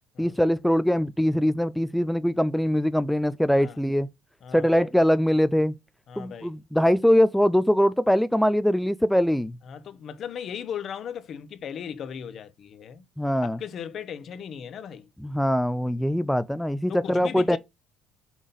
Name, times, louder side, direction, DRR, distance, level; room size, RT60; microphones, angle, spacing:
voice 1, 0.2-4.1 4.5-5.7 6.2-9.6 13.2-13.6 15.2-17.6, equal, 5° left, 0.5 m, -22 dB
voice 2, 4.4-4.8 6.1-6.5 9.6-13.0 13.4-15.1 16.9-17.6, left 8 dB, 55° left, 1.1 m, -37 dB
6.2 x 3.9 x 5.4 m
supercardioid pair, 90°, 0 cm